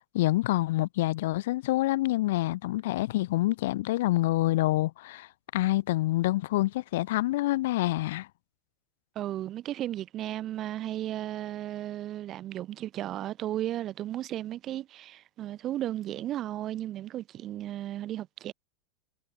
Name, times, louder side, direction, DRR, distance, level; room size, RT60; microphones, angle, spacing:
voice 1, 0.0-8.3, left 17 dB, 70° left, 2.1 m, -27 dB
voice 2, 9.2-18.5, right 13 dB, 40° right, 2.3 m, -34 dB
hypercardioid pair, 105°, 0 cm